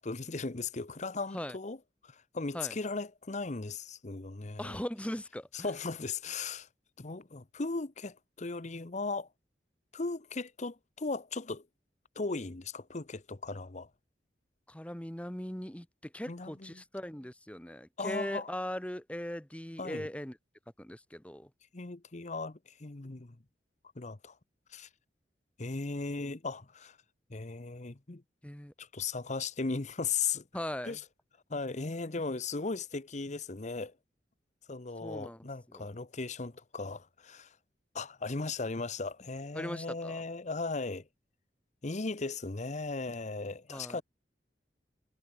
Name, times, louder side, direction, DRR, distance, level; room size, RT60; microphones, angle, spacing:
voice 1, 0.0-1.8 2.0-4.8 5.6-6.7 7.0-9.3 9.9-11.6 12.2-13.9 16.3-16.7 18.0-18.5 19.8-20.1 21.7-23.4 24.0-24.4 24.7-24.9 25.6-27.0 27.3-28.2 28.8-30.5 30.8-31.0 31.5-33.9 34.7-37.5 37.9-41.1 41.8-44.0, left 4 dB, 45° left, 0.9 m, -37 dB
voice 2, 4.6-5.7 14.7-20.4 20.8-21.5 28.4-28.7 30.5-31.0 35.0-35.9 39.5-40.2 43.7-44.0, left 1 dB, 10° left, 1.3 m, -39 dB
head